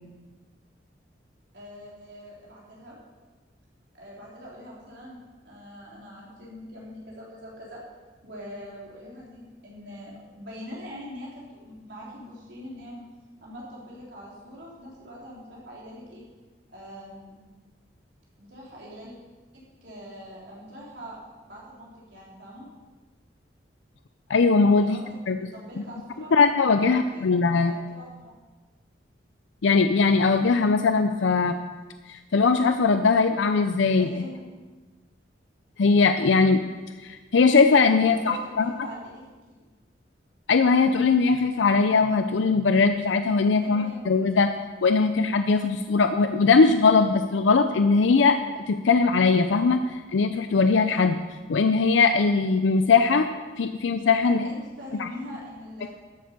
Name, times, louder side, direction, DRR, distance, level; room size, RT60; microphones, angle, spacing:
voice 1, 1.5-3.0 3.9-5.2 5.4-7.8 8.2-13.1 13.4-16.2 16.7-17.3 18.4-19.2 19.5-21.2 21.5-22.7 24.7-26.4 26.7-28.4 33.9-34.4 37.9-39.6 43.6-44.4 54.2-55.9, equal, 70° right, -5 dB, 3.7 m, -43 dB
voice 2, 24.3-25.0 25.3-25.4 26.3-27.7 29.6-31.6 32.1-34.1 35.8-36.6 37.0-38.7 40.5-44.5 44.8-48.4 48.7-51.2 51.5-53.3 53.6-54.4 55.0-55.1, left 4 dB, 90° left, 8 dB, 0.5 m, -20 dB
13.5 x 7.9 x 5.3 m, 1.3 s
head